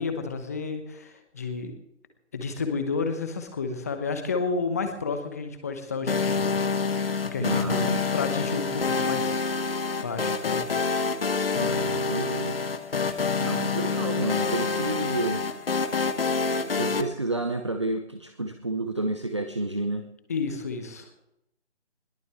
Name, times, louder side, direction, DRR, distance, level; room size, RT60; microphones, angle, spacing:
voice 1, 0.0-1.7 2.3-6.5 7.2-7.9 8.1-9.7 10.0-10.7 20.3-21.1, left 4 dB, 15° left, 7 dB, 1.0 m, -31 dB
sound 1, 6.1-17.0, left 4 dB, 55° left, 1.4 m, -27 dB
voice 2, 7.4-8.1 11.6-12.6 13.4-15.4 16.8-20.1, right 2 dB, 25° right, 7 dB, 0.6 m, -30 dB
21.0 x 17.5 x 3.6 m, 0.83 s
figure-of-eight pair, 160°, 34 cm